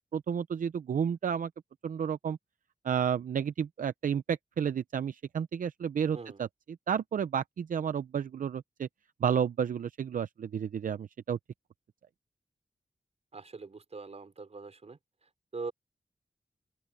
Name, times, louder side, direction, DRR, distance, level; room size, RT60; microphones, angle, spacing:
voice 1, 0.0-1.5 1.8-2.4 2.8-6.5 6.9-8.9 9.2-11.4, right 8 dB, 80° right, 0.6 m, -31 dB
voice 2, 13.3-15.7, right 4 dB, 55° right, 4.5 m, -43 dB
open air
wide cardioid pair, 75°, 14 cm